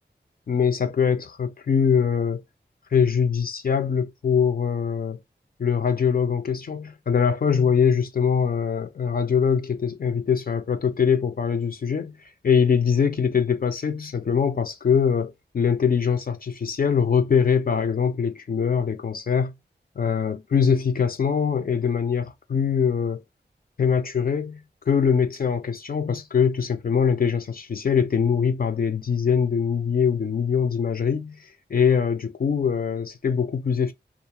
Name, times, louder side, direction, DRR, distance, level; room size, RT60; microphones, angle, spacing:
voice 1, 0.5-2.4 2.9-5.2 5.6-12.1 12.4-19.5 20.0-23.2 23.8-24.6 24.9-31.4 31.7-33.9, left 6 dB, 55° left, 0.4 m, -23 dB
2.3 x 2.0 x 2.8 m
wide cardioid pair, 85°, 19 cm